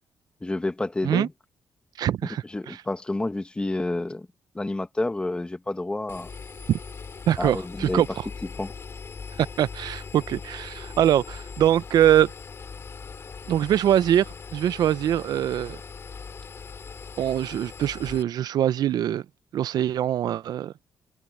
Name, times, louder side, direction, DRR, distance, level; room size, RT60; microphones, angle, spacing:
voice 1, 0.4-1.3 2.5-4.3 4.6-6.3 7.4-8.0 8.6-8.7, left 2 dB, 15° left, 1.7 m, -29 dB
voice 2, 2.0-2.8 6.7-6.8 7.3-8.1 9.6-12.3 13.5-15.8 17.2-19.2 19.5-20.7, right 11 dB, 70° right, 0.6 m, -23 dB
Engine, 6.1-18.2, left 5 dB, 40° left, 3.8 m, -40 dB
cardioid pair, 115°, 7 cm